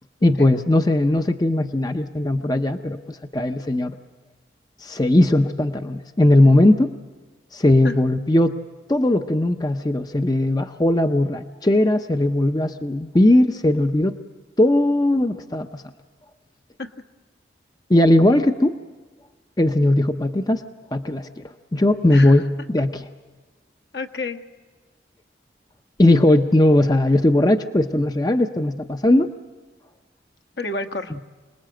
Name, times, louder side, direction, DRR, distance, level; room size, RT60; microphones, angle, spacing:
voice 1, 0.2-4.0 4.8-6.9 7.5-8.6 8.9-14.1 14.6-15.8 17.9-18.8 19.6-20.6 20.9-21.4 21.7-23.1 26.0-29.3, left 1 dB, 20° left, 7 dB, 0.7 m, -18 dB
voice 2, 22.1-22.4 23.9-24.4 30.6-31.2, left 3 dB, 65° left, 6 dB, 1.4 m, -30 dB
27.0 x 20.0 x 7.7 m, 1.4 s
head